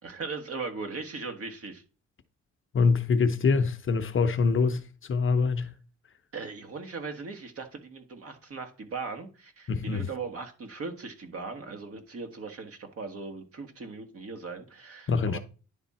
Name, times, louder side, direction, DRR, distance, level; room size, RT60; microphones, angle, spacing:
voice 1, 0.0-1.8 6.3-15.4, right 4 dB, 50° right, 1.7 m, -39 dB
voice 2, 2.7-4.8 5.1-5.7 9.7-10.1 15.1-15.4, left 4 dB, 40° left, 0.8 m, -24 dB
10.5 x 3.7 x 4.2 m
cardioid pair, 90°, 30 cm